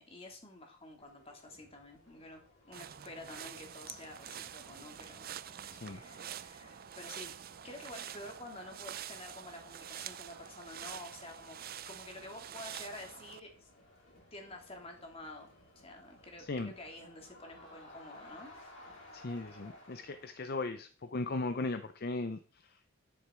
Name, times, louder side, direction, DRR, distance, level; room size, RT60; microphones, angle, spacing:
voice 1, 0.0-5.3 5.8-7.3 7.6-11.6 11.9-13.7 14.3-18.7, left 2 dB, 30° left, 2 dB, 2.8 m, -49 dB
Crowd, 1.0-20.4, left 1 dB, 65° left, 6.8 m, -59 dB
sound 1, 2.7-13.4, right 10 dB, 45° right, 0.5 m, -47 dB
voice 2, 5.7-6.0 16.4-16.7 19.1-22.8, left 3 dB, 50° left, 10 dB, 0.6 m, -37 dB
10.5 x 10.0 x 4.5 m, 0.39 s
head